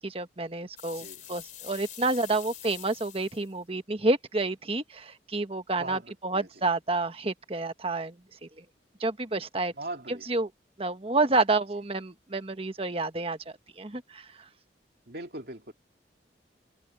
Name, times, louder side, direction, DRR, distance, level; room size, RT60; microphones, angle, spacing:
voice 1, 0.0-8.2 8.6-8.7 9.0-9.7 10.1-10.5 10.8-13.4 13.8-14.3, right 3 dB, 35° right, 1.3 m, -29 dB
sound 1, 0.8-3.5, left 12 dB, 45° left, 3.6 m, -45 dB
voice 2, 5.8-6.5 9.8-10.3 15.1-15.7, right 2 dB, 60° right, 2.9 m, -40 dB
head